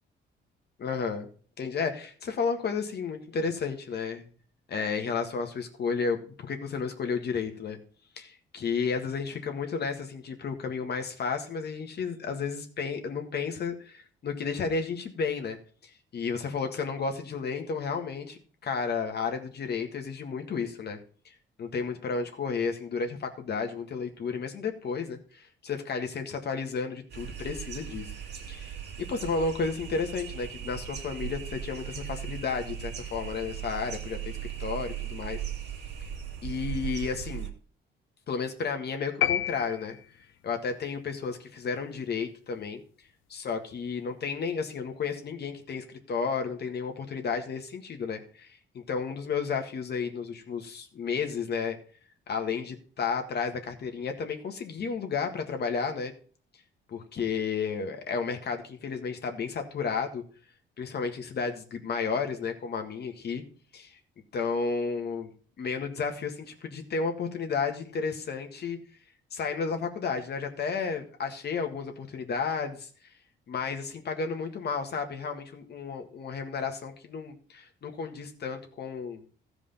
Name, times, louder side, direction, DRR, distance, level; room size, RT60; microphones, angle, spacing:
voice 1, 0.8-1.3 1.6-4.3 4.7-7.8 8.2-15.6 16.1-21.0 21.2-21.3 21.6-28.1 28.5-28.7 29.1-34.3 34.6-35.4 36.4-37.5 38.3-40.0 40.4-42.8 43.3-51.8 52.3-56.1 56.9-60.2 60.8-63.4 63.7-64.0 64.3-65.3 65.6-68.8 69.3-72.9 73.5-79.2, left 5 dB, 55° left, 5 dB, 1.7 m, -32 dB
sound 1, 27.1-37.5, right 9 dB, 60° right, 2.1 m, -38 dB
sound 2, 39.2-40.4, left 11 dB, 80° left, 0.5 m, -29 dB
14.0 x 5.0 x 5.6 m, 0.42 s
cardioid pair, 90°, 20 cm